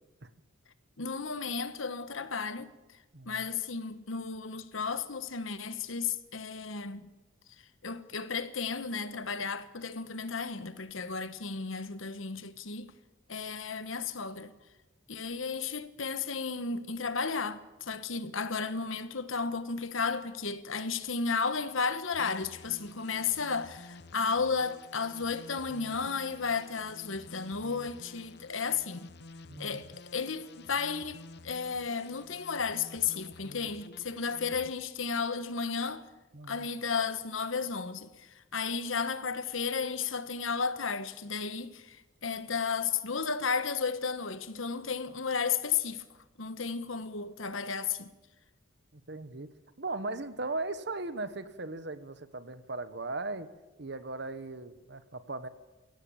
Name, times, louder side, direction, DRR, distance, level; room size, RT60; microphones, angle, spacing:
voice 1, 1.0-2.7 3.3-7.1 7.8-12.9 13.3-14.5 15.1-29.1 29.6-36.0 36.5-42.0 42.2-46.0 46.4-48.1, left 5 dB, 85° left, 1.3 m, -33 dB
voice 2, 3.1-3.5 29.5-29.8 36.3-36.7 48.9-49.5 49.8-53.5 53.8-55.5, right 2 dB, 55° right, 1.2 m, -38 dB
sound 1, 22.1-34.7, left 3 dB, 55° left, 0.9 m, -51 dB
22.5 x 17.0 x 7.2 m
head